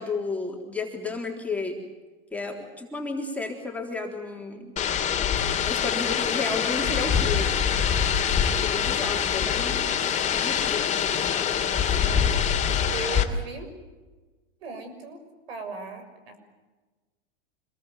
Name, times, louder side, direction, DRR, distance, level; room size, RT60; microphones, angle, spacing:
voice 1, 0.0-1.8 2.3-4.7 5.6-7.5 8.6-9.9 10.3-10.8 11.8-12.3, left 3 dB, 5° left, -1 dB, 3.7 m, -32 dB
sound 1, 4.8-13.2, left 8 dB, 25° left, 2.7 m, -24 dB
voice 2, 12.9-13.7 14.6-15.2 15.5-16.4, right 4 dB, 85° right, 8 dB, 6.4 m, -37 dB
26.5 x 21.5 x 7.7 m, 1.3 s
supercardioid pair, 130°, 30 cm